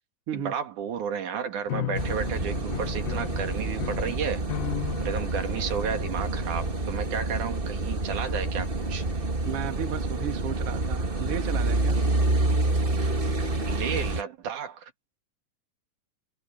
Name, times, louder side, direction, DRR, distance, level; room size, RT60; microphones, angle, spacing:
voice 1, 0.3-4.4 5.0-9.0 13.7-14.9, right 7 dB, 75° right, 3.4 m, -32 dB
sound 1, 1.7-10.0, left 18 dB, 85° left, 2.3 m, -38 dB
Car passing by / Idling / Accelerating revving vroom, 1.9-14.2, right 2 dB, 30° right, 1.1 m, -28 dB
voice 2, 9.4-12.1, right 8 dB, 50° right, 2.4 m, -34 dB
omnidirectional pair, 3.6 m